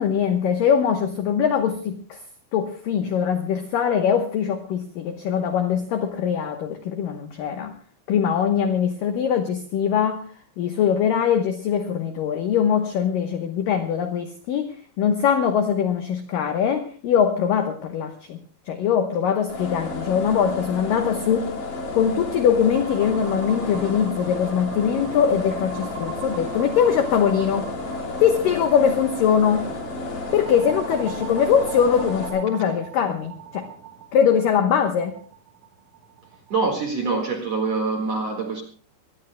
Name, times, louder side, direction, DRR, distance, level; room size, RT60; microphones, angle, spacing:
voice 1, 0.0-2.2 2.5-7.7 8.1-10.2 10.6-18.4 18.7-21.5 21.9-27.7 28.2-29.7 30.3-33.7 34.1-35.1, left 8 dB, 90° left, 6 dB, 1.9 m, -22 dB
sound 1, 19.5-32.3, left 3 dB, 45° left, 4.8 m, -32 dB
sound 2, 22.7-36.8, right 8 dB, 80° right, 4.8 m, -41 dB
voice 2, 36.5-38.6, right 3 dB, 55° right, 1 dB, 1.9 m, -25 dB
25.0 x 18.5 x 2.2 m, 0.41 s
omnidirectional pair, 5.6 m